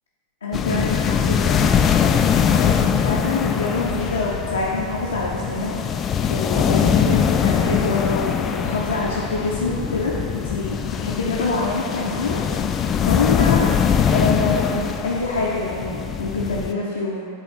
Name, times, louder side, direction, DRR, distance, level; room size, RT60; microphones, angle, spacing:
voice 1, 0.4-1.7 2.2-5.7 6.3-10.1 10.4-12.8 13.1-13.6 14.1-17.2, left 3 dB, 70° left, -5 dB, 0.7 m, -25 dB
sound 1, 0.5-16.7, left 7 dB, 25° left, 0.3 m, -22 dB
7.9 x 3.3 x 4.4 m, 2.7 s
figure-of-eight pair, 90°, 0 cm